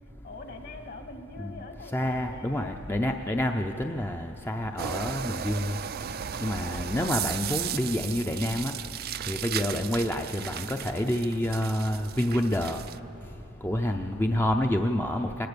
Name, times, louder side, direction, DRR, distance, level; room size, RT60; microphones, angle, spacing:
voice 1, 0.2-2.7 13.8-14.3, left 2 dB, 55° left, 5 dB, 1.8 m, -44 dB
voice 2, 1.9-5.8 6.4-8.8 9.3-12.8 13.6-15.5, left 1 dB, 10° left, 4 dB, 0.6 m, -28 dB
sound 1, 4.8-13.0, right 9 dB, 50° right, 0.5 m, -36 dB
23.5 x 20.0 x 6.9 m, 2.9 s
head